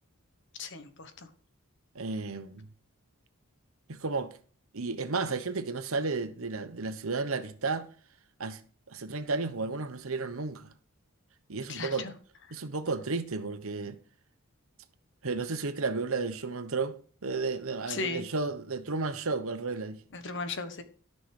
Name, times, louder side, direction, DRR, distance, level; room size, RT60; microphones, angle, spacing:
voice 1, 0.6-1.3 11.7-12.1 17.9-18.3 20.1-20.8, left 4 dB, 55° left, 1.3 m, -36 dB
voice 2, 1.9-2.7 3.9-4.3 4.7-7.9 8.4-8.6 8.9-10.7 11.5-12.1 12.5-14.0 15.2-17.0 17.2-20.0, right 4 dB, 65° right, 1.0 m, -33 dB
13.5 x 6.3 x 4.9 m
head